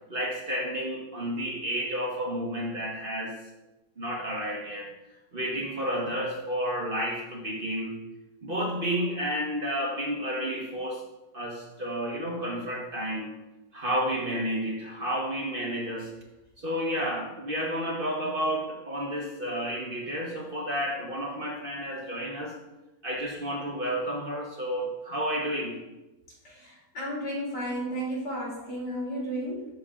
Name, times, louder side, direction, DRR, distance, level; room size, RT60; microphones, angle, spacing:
voice 1, 0.1-3.4 4.0-4.9 5.3-8.0 8.4-11.1 11.3-13.3 13.7-16.1 16.6-22.6 23.0-25.8, equal, 35° right, -1 dB, 1.3 m, -31 dB
voice 2, 26.4-29.7, equal, 90° left, -5 dB, 3.7 m, -33 dB
13.0 x 6.6 x 2.5 m, 1.0 s
omnidirectional pair, 1.8 m